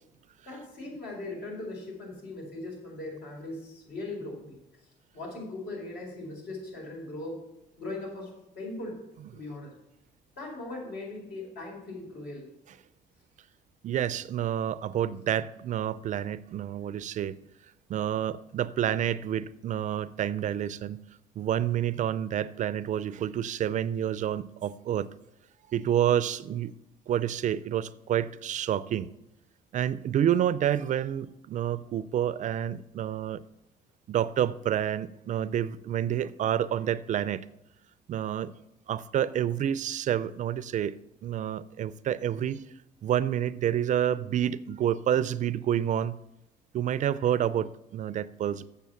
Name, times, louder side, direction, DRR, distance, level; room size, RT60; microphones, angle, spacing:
voice 1, 0.5-4.6 5.1-7.4 7.8-8.3 8.5-9.0 9.3-9.7 10.4-12.5, left 2 dB, 75° left, 4.5 m, -39 dB
voice 2, 13.8-17.3 17.9-21.0 21.4-25.1 25.7-26.7 27.1-29.1 29.7-33.4 34.1-37.4 38.1-38.5 38.9-40.9 41.2-42.6 43.0-46.2 46.7-48.7, right 10 dB, 50° right, 0.4 m, -28 dB
7.4 x 7.1 x 7.0 m
cardioid pair, 110°, 17 cm